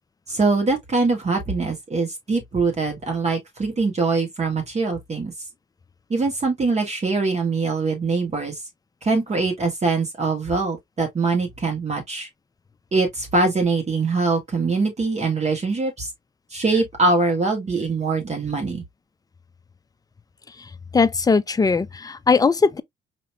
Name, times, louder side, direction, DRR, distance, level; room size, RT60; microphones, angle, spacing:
voice 1, 0.3-5.3 6.1-8.6 9.0-12.3 12.9-16.1 16.5-18.8, right 3 dB, 35° right, 1.5 m, -23 dB
voice 2, 20.9-22.8, left 4 dB, 20° left, 0.4 m, -19 dB
5.0 x 2.9 x 2.3 m
cardioid pair, 90°, 20 cm